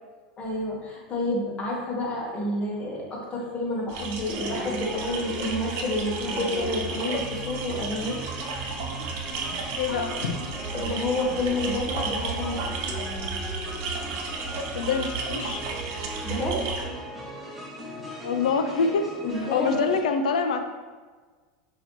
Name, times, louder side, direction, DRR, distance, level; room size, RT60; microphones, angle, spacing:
voice 1, 0.4-8.2 10.7-12.9 16.2-16.7 19.2-19.8, left 1 dB, 30° left, -2 dB, 1.2 m, -29 dB
sound 1, 3.9-16.8, right 4 dB, 55° right, 0.7 m, -33 dB
sound 2, 4.3-20.0, equal, 5° right, 1.0 m, -38 dB
voice 2, 9.8-10.3 14.7-15.6 18.2-19.0 19.5-20.6, left 5 dB, 85° left, 7 dB, 0.4 m, -25 dB
5.6 x 2.8 x 3.0 m, 1.4 s
hypercardioid pair, 100°, 4 cm